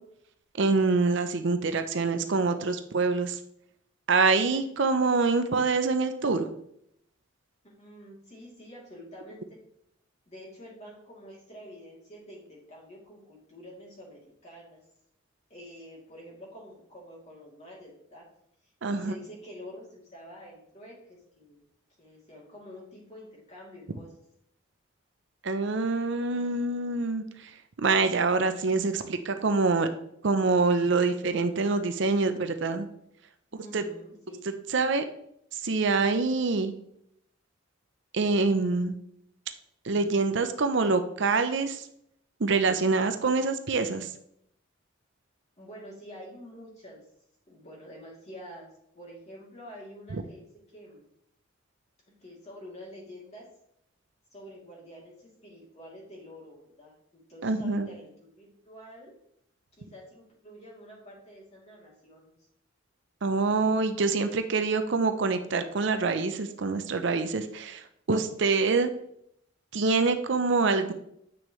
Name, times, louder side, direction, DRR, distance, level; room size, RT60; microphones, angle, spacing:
voice 1, 0.6-3.4 4.1-6.5 18.8-19.1 25.4-27.5 27.8-29.9 30.2-32.9 33.7-33.8 34.7-35.0 35.5-36.7 38.1-39.0 39.8-41.9 42.4-44.1 50.1-50.2 57.4-57.9 63.2-68.9 69.7-70.9, right 3 dB, 60° right, 9 dB, 0.6 m, -25 dB
voice 2, 7.6-9.6 10.3-14.8 15.5-18.2 18.6-21.6 22.0-24.1 33.5-34.4 45.6-47.0 47.5-48.7 48.9-50.5 50.7-51.0 52.2-53.4 54.3-59.1 59.7-62.3, equal, 35° left, -5 dB, 2.8 m, -47 dB
8.6 x 6.2 x 3.1 m, 0.73 s
head